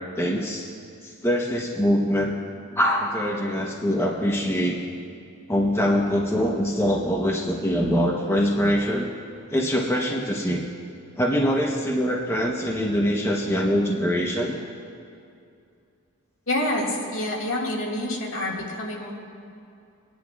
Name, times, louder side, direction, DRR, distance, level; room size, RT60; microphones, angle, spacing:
voice 1, 0.2-0.7 1.0-2.4 2.7-4.8 5.5-9.1 9.5-10.6 11.2-14.6, equal, 10° left, -2 dB, 0.8 m, -23 dB
voice 2, 16.5-19.1, left 1 dB, 75° left, -3 dB, 1.9 m, -27 dB
26.5 x 10.5 x 2.4 m, 2.4 s
head